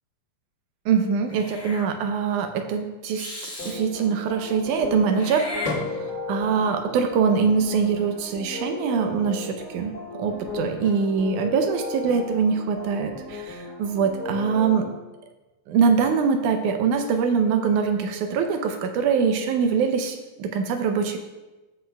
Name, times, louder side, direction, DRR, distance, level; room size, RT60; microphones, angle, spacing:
voice 1, 0.9-3.3 3.7-5.5 6.3-14.9 15.7-21.2, right 6 dB, 75° right, 6 dB, 2.0 m, -23 dB
Meow / Hiss, 1.3-1.9 3.1-3.8 5.1-6.3, left 2 dB, 20° left, 1.3 m, -33 dB
sound 1, 3.6-14.9, left 3 dB, 35° left, 1.8 m, -36 dB
16.0 x 6.3 x 2.3 m, 1.1 s
omnidirectional pair, 3.9 m